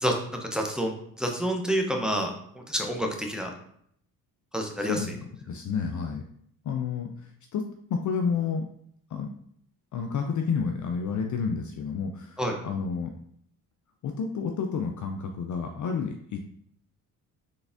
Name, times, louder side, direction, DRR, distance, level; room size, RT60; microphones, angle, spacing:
voice 1, 0.0-3.5 4.5-5.0 12.4-12.6, equal, ahead, 2 dB, 0.7 m, -28 dB
voice 2, 4.8-5.2 5.5-6.2 6.6-8.7 9.1-9.3 9.9-13.1 14.0-16.4, left 5 dB, 40° left, 4 dB, 0.4 m, -30 dB
3.9 x 3.4 x 2.6 m, 0.67 s
hypercardioid pair, 55°, 48 cm